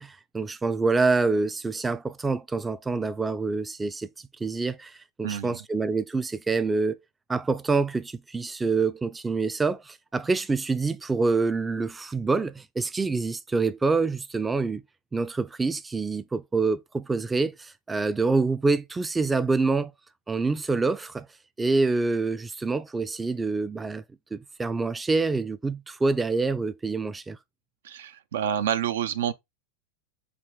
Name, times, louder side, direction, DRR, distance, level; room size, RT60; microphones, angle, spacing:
voice 1, 0.0-4.1 4.4-7.0 7.3-14.8 15.1-19.9 20.3-21.3 21.6-24.0 24.3-27.4, right 3 dB, 10° right, 0.3 m, -26 dB
voice 2, 5.2-5.6 27.8-29.3, right 9 dB, 80° right, 0.5 m, -28 dB
4.7 x 2.5 x 3.5 m
hypercardioid pair, 125°, 0 cm